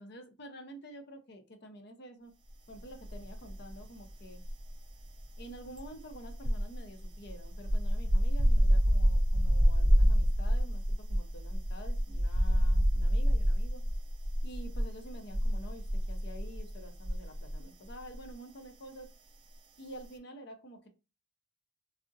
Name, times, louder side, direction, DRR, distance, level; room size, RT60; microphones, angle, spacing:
voice 1, 0.0-2.3 2.7-4.4 5.4-13.8 14.4-19.1 19.8-20.9, right 1 dB, 55° left, 5 dB, 0.6 m, -49 dB
sound 1, 3.0-17.6 17.9-18.1, equal, 25° right, 0.5 m, -27 dB
3.5 x 2.1 x 2.6 m, 0.29 s
head